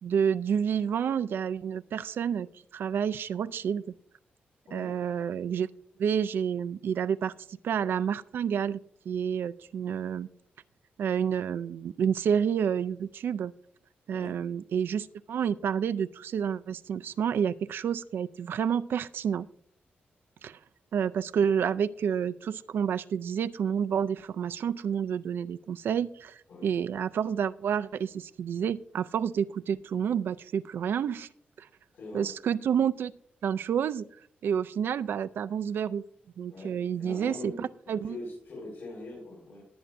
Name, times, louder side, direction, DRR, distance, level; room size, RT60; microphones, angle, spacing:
voice 1, 0.0-2.5 2.7-3.8 4.7-5.7 6.0-7.3 7.6-8.8 9.1-10.3 11.0-13.5 14.1-19.5 20.4-20.6 20.9-31.3 31.6-31.7 32.1-33.1 33.4-34.1 34.4-36.0 36.4-38.2, right 8 dB, 75° right, 12 dB, 0.4 m, -29 dB
voice 2, 31.9-32.3 36.5-37.6 37.9-39.6, left 2 dB, 75° left, -6 dB, 5.8 m, -42 dB
19.0 x 8.7 x 2.6 m, 0.63 s
wide cardioid pair, 160°, 4 cm